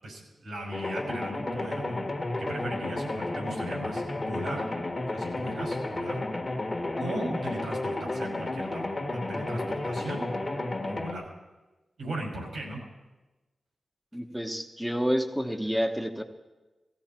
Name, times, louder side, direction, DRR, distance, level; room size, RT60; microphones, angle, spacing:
voice 1, 0.0-2.0 2.4-4.7 5.1-6.2 7.0-10.2 10.9-11.3 12.0-12.8 14.3-14.4, right 1 dB, 85° right, -1 dB, 5.9 m, -38 dB
sound 1, 0.7-11.1, left 2 dB, 30° left, 1.4 m, -32 dB
voice 2, 7.0-7.4 14.1-16.2, equal, ahead, 5 dB, 1.1 m, -29 dB
18.5 x 16.0 x 4.5 m, 1.1 s
wide cardioid pair, 145°, 0 cm